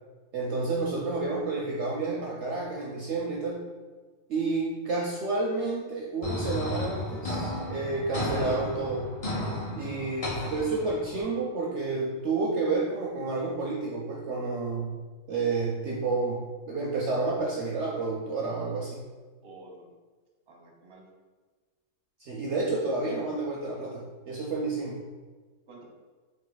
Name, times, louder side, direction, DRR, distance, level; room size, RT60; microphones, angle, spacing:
voice 1, 0.3-3.6 4.3-9.1 9.7-14.9 15.3-19.0 22.2-25.0, right 3 dB, 65° right, -2 dB, 0.7 m, -30 dB
sound 1, 6.2-11.2, left 1 dB, 30° left, 0.7 m, -33 dB
voice 2, 9.9-10.5 19.4-19.9 20.5-21.0 25.7-25.8, right 2 dB, 30° right, -2 dB, 0.6 m, -50 dB
3.7 x 3.4 x 3.9 m, 1.4 s
omnidirectional pair, 1.6 m